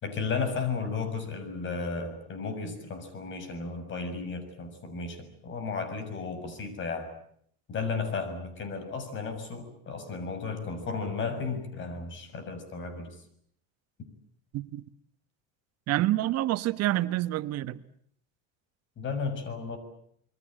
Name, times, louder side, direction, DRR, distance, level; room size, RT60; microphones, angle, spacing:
voice 1, 0.0-7.1 7.7-13.1 19.0-19.8, left 4 dB, 35° left, 6.8 m, -34 dB
voice 2, 15.9-17.8, right 15 dB, 50° right, 1.4 m, -27 dB
28.0 x 22.0 x 8.9 m
supercardioid pair, 125°, 32 cm